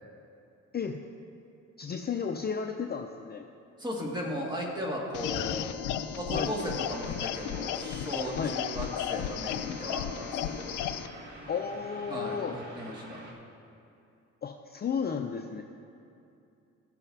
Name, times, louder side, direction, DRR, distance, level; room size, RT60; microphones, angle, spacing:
voice 1, 1.8-3.5 6.3-6.5 8.3-8.6 11.5-12.6 14.4-15.6, left 6 dB, 35° left, 4 dB, 0.5 m, -33 dB
voice 2, 3.8-5.7 6.2-10.8 12.1-13.2, equal, 15° right, -3 dB, 2.2 m, -36 dB
sound 1, 5.1-11.1, left 10 dB, 85° left, 0.5 m, -34 dB
sound 2, 6.6-13.3, right 1 dB, 75° right, 1.9 m, -47 dB
16.0 x 7.1 x 2.8 m, 2.6 s
cardioid pair, 90°, 30 cm